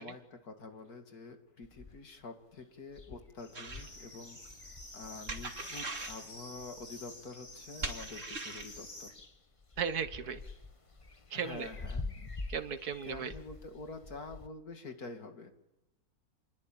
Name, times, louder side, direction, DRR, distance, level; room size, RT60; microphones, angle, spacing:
voice 1, 0.0-4.4 4.9-9.2 11.3-12.3 13.1-15.5, left 3 dB, 80° left, 5 dB, 2.8 m, -47 dB
sound 1, 1.6-2.2 2.6-2.7 2.9-6.9 7.5-8.3 8.6-14.5, left 3 dB, 25° left, 1.2 m, -47 dB
sound 2, 3.4-9.1, left 1 dB, 60° left, 6.0 m, -50 dB
sound 3, 3.5-3.9 5.3-6.2 7.8-8.7, right 3 dB, 55° right, 2.9 m, -40 dB
voice 2, 9.8-10.4 11.3-11.7 12.5-13.3, right 7 dB, 90° right, 10 dB, 1.8 m, -36 dB
28.0 x 22.0 x 9.0 m, 0.96 s
omnidirectional pair, 1.6 m